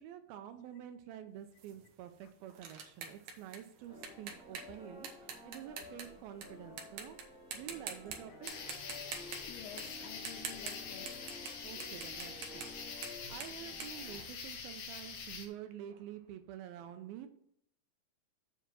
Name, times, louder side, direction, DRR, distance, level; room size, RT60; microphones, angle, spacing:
voice 1, 0.0-7.2 7.5-8.5 11.6-12.7 13.3-17.3, right 10 dB, 80° right, 8 dB, 2.3 m, -48 dB
sound 1, 1.6-6.4 6.8-7.2 7.5-8.2 8.5-11.5 11.8-14.8, right 6 dB, 65° right, 2.0 m, -46 dB
sound 2, 3.9-14.3, left 2 dB, 5° right, 1.0 m, -52 dB
voice 2, 8.3-8.6 9.5-11.1 12.9-13.0 14.0-14.3, left 10 dB, 80° left, 11 dB, 2.5 m, -52 dB
sound 3, 8.4-15.5, left 6 dB, 65° left, 2.3 m, -45 dB
7.9 x 5.0 x 6.1 m, 0.69 s
omnidirectional pair, 4.6 m